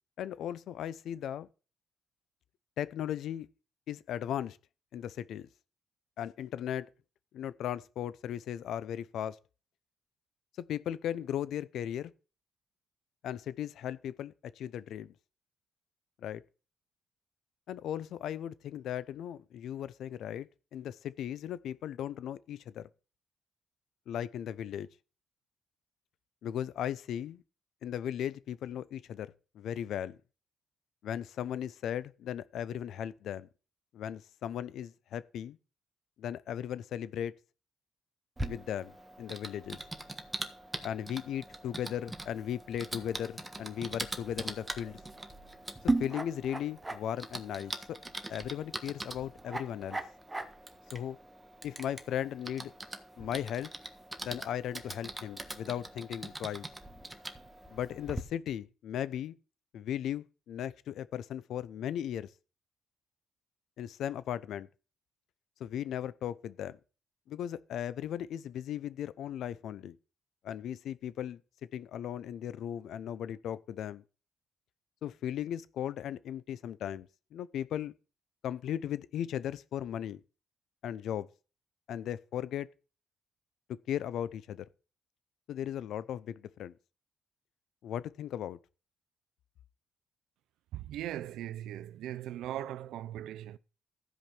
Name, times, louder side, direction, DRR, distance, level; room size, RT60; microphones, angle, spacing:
voice 1, 0.2-1.5 2.8-3.5 3.9-4.6 4.9-5.5 6.2-6.9 7.3-9.4 10.7-12.1 13.2-15.1 16.2-16.4 17.7-22.9 24.1-24.9 26.4-27.4 27.8-30.2 31.0-33.5 33.9-35.6 36.2-37.3 38.4-39.8 40.8-45.0 45.8-48.0 48.3-50.0 50.9-51.2 51.6-52.7 53.2-53.7 54.2-56.7 57.7-59.3 59.7-62.3 63.8-64.7 65.6-66.8 67.3-70.0 70.4-71.4 71.7-74.0 75.0-77.9 78.4-80.2 80.8-81.3 81.9-82.7 83.7-84.6 85.5-86.7 87.8-88.6, left 10 dB, 75° left, 0.7 m, -37 dB
Typing, 38.4-58.2, right 2 dB, 15° right, 1.4 m, -40 dB
voice 2, 90.7-93.6, right 12 dB, 85° right, 0.6 m, -39 dB
14.5 x 5.3 x 5.9 m
cardioid pair, 90°, 0 cm